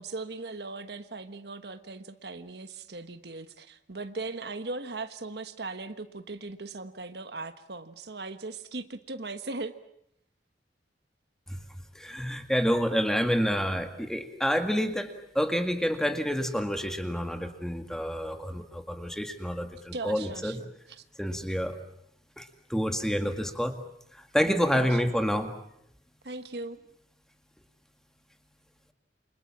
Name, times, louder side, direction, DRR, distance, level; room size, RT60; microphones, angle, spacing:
voice 1, 0.0-9.8 19.9-20.6 21.0-21.1 24.7-25.2 26.2-26.8, right 3 dB, 65° right, 10 dB, 1.3 m, -38 dB
voice 2, 12.0-20.6 21.2-21.8 22.4-23.8 24.1-25.5, equal, 5° left, 6 dB, 2.0 m, -28 dB
28.5 x 26.0 x 7.3 m, 0.76 s
head